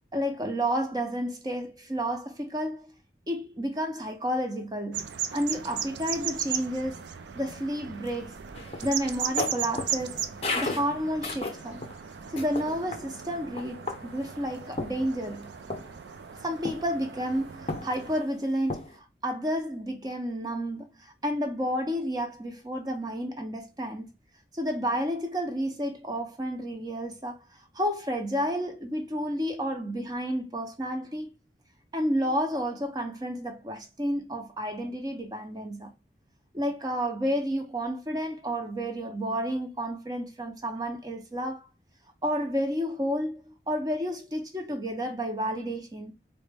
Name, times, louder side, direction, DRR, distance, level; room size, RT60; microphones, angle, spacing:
voice 1, 0.1-2.9 3.3-7.0 7.4-8.4 8.8-10.2 10.5-11.8 12.3-15.5 16.4-24.1 24.5-27.4 27.7-31.3 31.9-35.9 36.5-41.7 42.2-46.1, equal, 20° right, 0.6 m, -31 dB
sound 1, 4.9-18.2, right 8 dB, 75° right, 0.4 m, -37 dB
sound 2, 8.5-12.0 12.4-13.0 13.6-14.2 14.8-15.4 15.7-16.0 16.7-17.1 17.7-18.3 18.7-19.0, left 2 dB, 35° left, 0.6 m, -34 dB
4.0 x 2.1 x 3.4 m
head